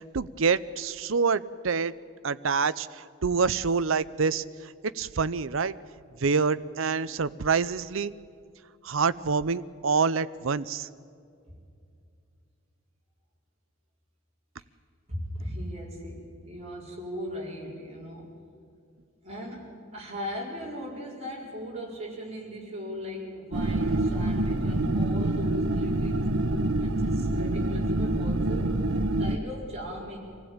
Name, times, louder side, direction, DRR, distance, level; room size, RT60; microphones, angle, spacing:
voice 1, 0.0-1.9 2.2-5.7 6.2-8.1 8.8-10.9, right 5 dB, 65° right, 16 dB, 0.7 m, -27 dB
voice 2, 15.1-18.3 19.2-28.8 29.2-30.2, equal, 30° right, -3 dB, 4.8 m, -38 dB
sound 1, 23.5-29.4, right 1 dB, 85° right, 1.2 m, -26 dB
26.0 x 16.0 x 8.8 m, 2.4 s
head